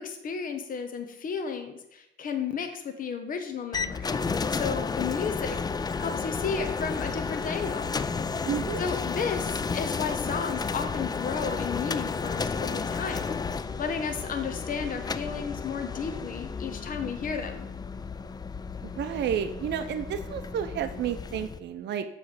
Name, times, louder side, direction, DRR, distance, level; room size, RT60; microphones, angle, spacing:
voice 1, 0.0-4.2 4.5-5.6 6.0-8.0 8.8-17.7, left 6 dB, 45° left, 5 dB, 0.8 m, -33 dB
sound 1, 3.7-21.6, left 5 dB, 20° left, 0.3 m, -32 dB
voice 2, 8.5-8.8 18.8-22.0, right 9 dB, 60° right, 8 dB, 0.6 m, -31 dB
7.2 x 3.2 x 5.9 m, 0.88 s
cardioid pair, 90°, 20 cm